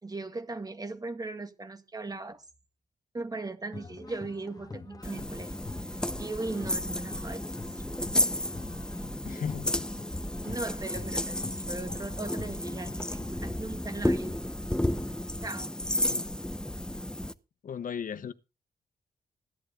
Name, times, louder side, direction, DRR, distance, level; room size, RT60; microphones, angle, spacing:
voice 1, 0.0-2.4 3.1-5.5 5.8-7.8 10.4-14.3 15.4-15.8, right 3 dB, 25° right, 1.8 m, -38 dB
sound 1, 3.7-13.3, left 3 dB, 25° left, 1.6 m, -45 dB
sound 2, 5.0-17.3, left 1 dB, 5° left, 0.8 m, -32 dB
voice 2, 9.2-9.8 16.1-16.2 17.6-18.3, left 7 dB, 65° left, 1.0 m, -36 dB
16.0 x 11.0 x 3.8 m
wide cardioid pair, 110°, 15 cm